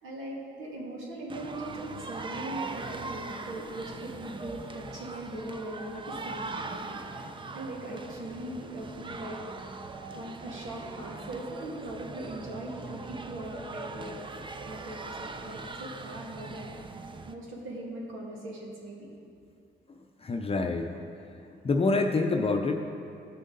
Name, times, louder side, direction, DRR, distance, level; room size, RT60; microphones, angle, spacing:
voice 1, 0.0-9.4 10.1-14.1 14.7-16.8 17.3-19.1, right 1 dB, 85° right, -3 dB, 2.2 m, -40 dB
sound 1, 1.3-17.3, right 3 dB, 25° right, 0.6 m, -41 dB
voice 2, 19.9-21.1 21.6-22.8, left 3 dB, 30° left, 3 dB, 0.6 m, -27 dB
15.0 x 6.3 x 4.0 m, 2.5 s
cardioid pair, 90°, 20 cm